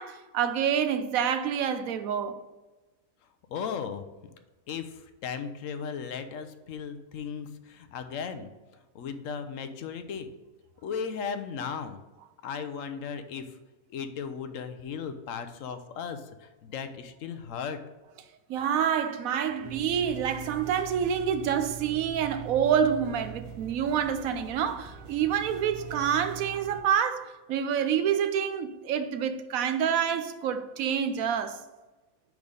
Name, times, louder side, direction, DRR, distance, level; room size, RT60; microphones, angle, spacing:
voice 1, 0.0-2.4 18.5-31.6, right 8 dB, 80° right, 1.1 m, -27 dB
voice 2, 3.5-4.0 4.7-8.5 8.9-10.3 10.8-12.0 12.4-13.5 13.9-17.8, left 6 dB, 70° left, 1.0 m, -36 dB
sound 1, 19.6-26.8, right 8 dB, 50° right, 0.7 m, -43 dB
5.4 x 4.7 x 5.1 m
omnidirectional pair, 1.5 m